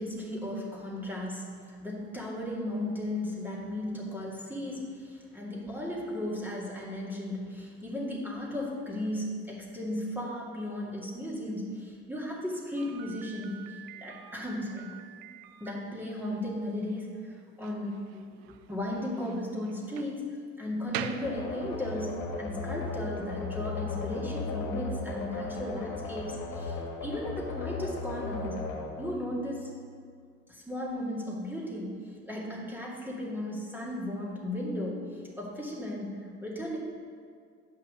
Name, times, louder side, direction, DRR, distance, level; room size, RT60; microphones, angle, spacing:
voice 1, 0.0-14.9 15.6-20.2 20.6-22.1 22.4-28.6 29.0-29.7 30.5-36.8, left 1 dB, 5° right, -4 dB, 2.2 m, -36 dB
Slam, 12.8-22.1, right 10 dB, 70° right, 0.5 m, -45 dB
sound 1, 21.2-29.9, left 3 dB, 65° left, 1.5 m, -36 dB
6.9 x 5.6 x 6.3 m, 2.2 s
hypercardioid pair, 60°, 32 cm